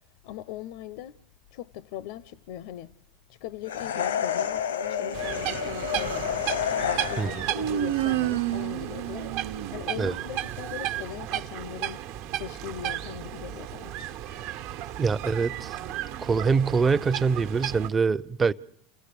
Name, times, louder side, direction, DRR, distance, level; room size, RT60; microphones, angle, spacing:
voice 1, 0.2-1.2 1.5-3.0 3.3-6.5 7.1-9.3 9.7-12.0 12.3-13.9, left 11 dB, 65° left, 0.8 m, -40 dB
sound 1, 3.7-7.5, left 8 dB, 80° left, 1.1 m, -29 dB
sound 2, 5.1-17.9, right 13 dB, 60° right, 1.3 m, -34 dB
Human voice, 5.4-6.4 7.5-10.3, right 13 dB, 80° right, 0.8 m, -30 dB
voice 2, 15.0-15.8 16.2-18.5, right 5 dB, 25° right, 0.8 m, -24 dB
29.0 x 16.5 x 6.9 m
hypercardioid pair, 80°, 0 cm